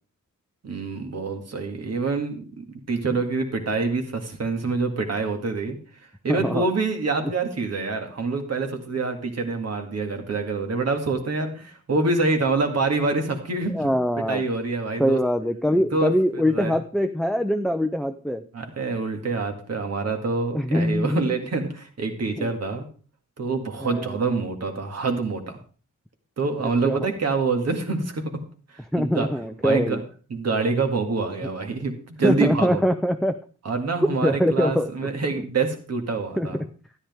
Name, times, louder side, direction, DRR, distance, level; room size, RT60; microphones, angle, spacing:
voice 1, 0.6-5.8 6.2-13.9 14.3-15.2 15.9-16.8 18.5-22.9 23.4-25.6 26.4-28.3 28.7-29.3 29.6-30.0 30.3-32.8 33.6-36.6, right 3 dB, 55° right, 5 dB, 2.1 m, -26 dB
voice 2, 6.3-6.6 13.7-14.4 15.0-18.4 20.5-21.3 22.4-22.5 23.8-24.2 26.8-27.1 28.9-30.0 32.2-33.4 34.2-34.9 36.4-36.6, equal, ahead, 6 dB, 0.5 m, -23 dB
13.0 x 10.0 x 3.6 m, 0.38 s
wide cardioid pair, 135°, 31 cm